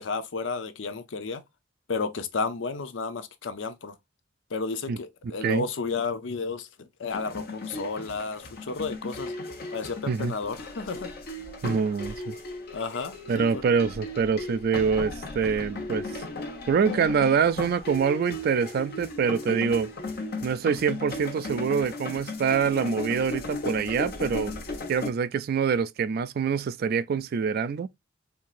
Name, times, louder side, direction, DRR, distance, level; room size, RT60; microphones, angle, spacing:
voice 1, 0.0-1.4 1.9-4.0 4.5-9.3 9.7-11.1 12.7-13.6, left 4 dB, 70° left, 0.6 m, -32 dB
voice 2, 5.2-5.7 10.1-10.3 11.6-12.3 13.3-16.2 16.7-19.9 20.4-24.5 24.9-27.9, right 6 dB, 50° right, 0.3 m, -25 dB
sound 1, 7.1-25.1, left 2 dB, 55° left, 1.0 m, -36 dB
4.5 x 2.8 x 2.4 m
head